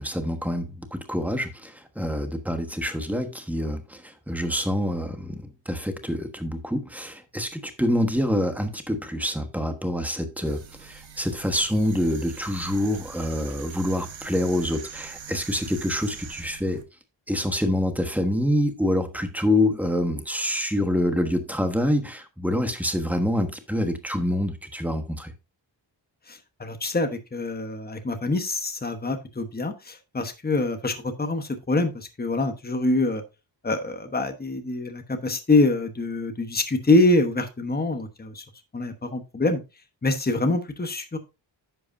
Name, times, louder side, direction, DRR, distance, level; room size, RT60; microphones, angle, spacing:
voice 1, 0.0-16.8 17.3-25.3, left 1 dB, 5° right, 1.3 m, -26 dB
sound 1, 10.4-16.8, right 7 dB, 85° right, 1.3 m, -43 dB
voice 2, 26.3-33.2 33.6-38.4 38.7-39.6 40.0-41.2, left 2 dB, 20° left, 1.2 m, -25 dB
10.5 x 7.9 x 2.7 m
wide cardioid pair, 155°, 45 cm